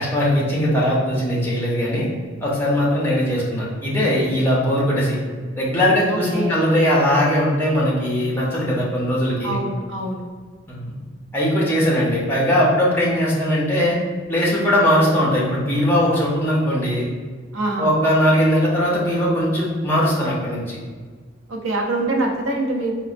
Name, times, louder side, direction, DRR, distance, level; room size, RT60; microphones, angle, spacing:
voice 1, 0.0-2.1 2.4-5.2 5.6-9.6 10.7-11.0 11.3-14.0 14.3-17.1 17.8-20.8, equal, 10° left, -6 dB, 0.6 m, -20 dB
voice 2, 6.1-6.6 9.4-10.3 17.5-17.9 21.5-22.9, right 2 dB, 85° right, 1 dB, 0.5 m, -24 dB
4.0 x 2.1 x 2.5 m, 1.5 s
head